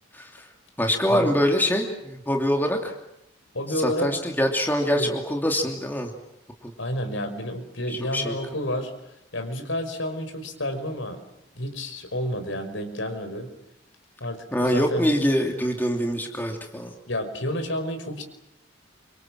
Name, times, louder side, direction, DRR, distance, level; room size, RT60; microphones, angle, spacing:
voice 1, 0.1-0.5 0.8-2.9 3.8-6.1 6.6-6.7 7.9-8.3 14.5-16.9, equal, 10° left, 2 dB, 2.8 m, -24 dB
voice 2, 3.5-4.1 4.9-5.2 6.8-8.9 9.3-11.2 11.5-13.5 14.2-15.1 17.1-18.2, left 1 dB, 70° left, 7 dB, 5.5 m, -30 dB
28.0 x 26.0 x 7.6 m, 0.84 s
head